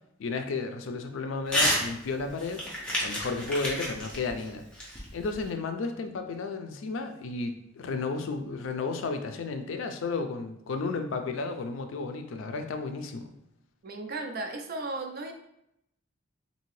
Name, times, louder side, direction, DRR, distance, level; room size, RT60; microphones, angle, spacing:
voice 1, 0.2-2.6 3.0-4.6 5.1-13.3, left 4 dB, 75° left, 7 dB, 0.4 m, -33 dB
Crumpling crinkling / Tearing, 1.5-1.8 2.2-5.5, equal, 5° left, 0.7 m, -30 dB
voice 2, 13.8-15.3, right 2 dB, 45° right, 5 dB, 0.4 m, -35 dB
2.8 x 2.6 x 3.1 m, 0.79 s
head